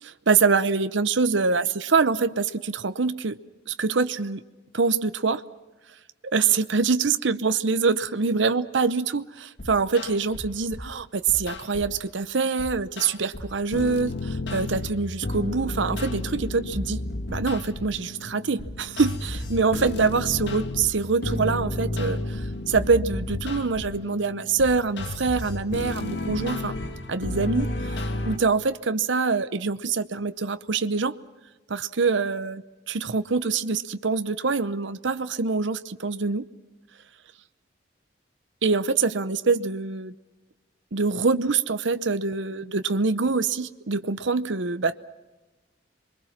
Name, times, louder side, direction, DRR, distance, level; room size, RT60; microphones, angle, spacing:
voice 1, 0.0-3.4 3.7-4.4 4.7-5.4 6.3-17.0 17.3-26.7 27.1-31.2 31.7-36.4 38.6-40.1 40.9-45.0, right 4 dB, 75° right, 11 dB, 0.8 m, -25 dB
sound 1, 9.6-10.9 11.3-12.0 12.6-28.4, left 2 dB, 65° left, 1.9 m, -32 dB
27.5 x 22.5 x 6.0 m, 1.1 s
head